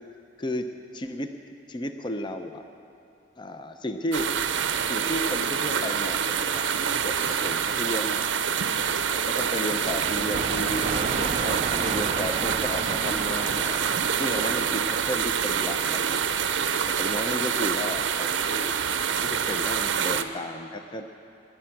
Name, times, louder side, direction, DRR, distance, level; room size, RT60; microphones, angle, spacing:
voice 1, 0.9-2.6 3.4-4.3 4.9-8.2 9.1-13.8 14.2-16.4 16.9-18.8 19.1-21.0, left 1 dB, 25° left, 7 dB, 0.5 m, -33 dB
sound 1, 4.1-20.2, right 7 dB, 75° right, 0.6 m, -26 dB
sound 2, 9.8-15.4, right 5 dB, 35° right, 0.3 m, -33 dB
20.0 x 10.0 x 5.9 m, 2.7 s
head